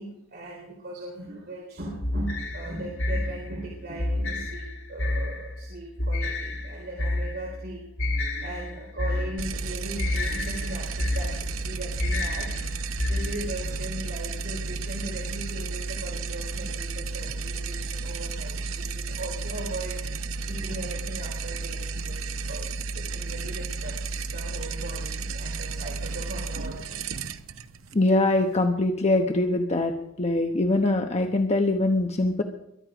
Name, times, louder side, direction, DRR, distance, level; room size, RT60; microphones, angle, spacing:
voice 1, 0.0-7.9 8.4-12.5 13.1-27.0, right 1 dB, 55° right, -2 dB, 3.9 m, -38 dB
sound 1, 2.0-13.7, left 1 dB, 70° left, 3.2 m, -30 dB
sound 2, 9.4-28.7, right 4 dB, 70° right, 0.8 m, -33 dB
voice 2, 27.9-29.9 30.2-32.4, left 2 dB, 30° left, 4 dB, 1.0 m, -23 dB
22.0 x 11.5 x 5.1 m, 0.80 s
head